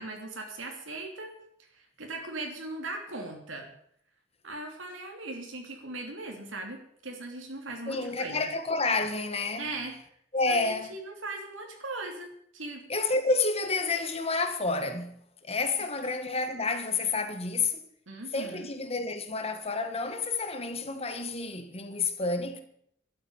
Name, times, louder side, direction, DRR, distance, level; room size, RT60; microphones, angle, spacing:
voice 1, 0.0-1.3 1.6-3.7 4.4-8.5 9.6-9.9 10.5-12.8 18.1-18.7, right 2 dB, 85° right, 3.0 m, -39 dB
voice 2, 7.9-9.7 10.3-10.9 12.9-17.8 18.3-22.6, left 3 dB, 30° left, 1.6 m, -29 dB
12.0 x 8.9 x 9.2 m
head